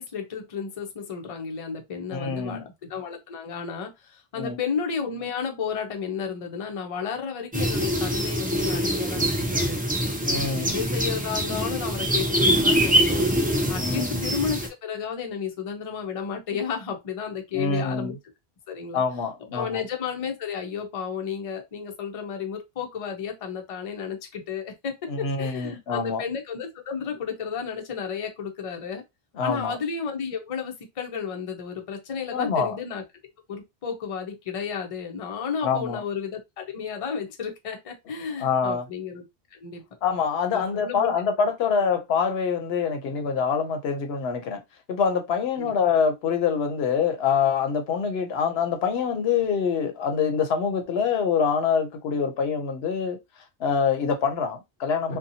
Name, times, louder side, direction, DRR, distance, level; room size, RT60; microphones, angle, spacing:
voice 1, 0.0-9.8 10.5-13.3 13.7-18.1 18.7-19.0 19.5-29.0 29.4-33.0 33.5-39.2 39.5-39.8 40.5-41.1 45.6-45.7, left 6 dB, 40° left, 0.6 m, -32 dB
voice 2, 2.1-2.6 4.4-4.6 10.2-10.7 13.8-14.2 17.5-18.1 18.9-19.8 25.1-26.2 29.4-29.8 32.3-32.8 35.6-36.0 38.4-38.8 40.0-44.6 44.9-53.2 53.6-55.2, left 6 dB, 85° left, 0.9 m, -25 dB
sound 1, 7.5-14.7, equal, 15° right, 0.3 m, -24 dB
2.7 x 2.2 x 2.6 m
omnidirectional pair, 1.0 m